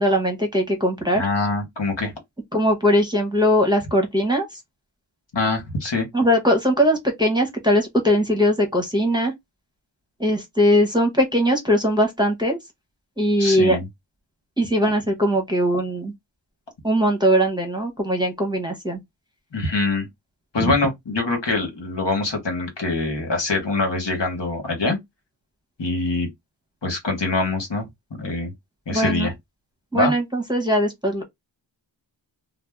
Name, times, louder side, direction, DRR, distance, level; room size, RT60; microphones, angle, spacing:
voice 1, 0.0-1.2 2.5-4.5 6.1-9.3 10.2-12.6 13.2-13.8 14.6-16.1 16.8-19.0 20.6-20.7 28.9-29.3 29.9-31.2, equal, 10° right, 0.9 m, -20 dB
voice 2, 1.1-2.1 5.3-6.1 13.4-13.9 19.5-20.1 20.5-25.0 25.8-26.3 26.8-27.8 28.2-28.5 28.9-29.3 29.9-30.1, left 3 dB, 65° left, 1.3 m, -24 dB
2.7 x 2.0 x 3.4 m
wide cardioid pair, 50°, 46 cm